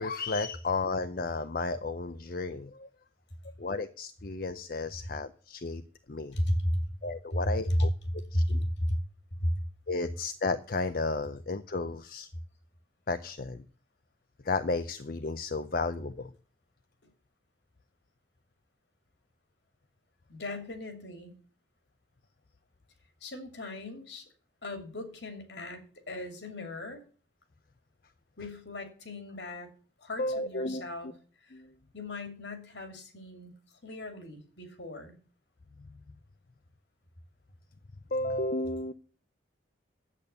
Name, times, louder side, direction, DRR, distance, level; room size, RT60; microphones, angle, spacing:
voice 1, 0.0-2.9 3.6-5.8 6.1-6.4 7.0-7.9 8.3-8.6 9.9-12.3 13.1-13.6 14.4-16.3 30.2-30.8 31.5-31.7 35.8-35.9 38.1-38.9, left 3 dB, 50° left, 10 dB, 0.6 m, -33 dB
voice 2, 6.3-6.8 7.7-7.9 8.3-9.0 9.4-9.5 20.3-21.3 23.2-24.3 24.6-27.0 28.4-29.7 30.0-31.1 31.4-31.5 31.9-33.5 33.8-35.1, left 1 dB, 70° left, 6 dB, 2.6 m, -34 dB
11.0 x 8.5 x 6.8 m, 0.41 s
head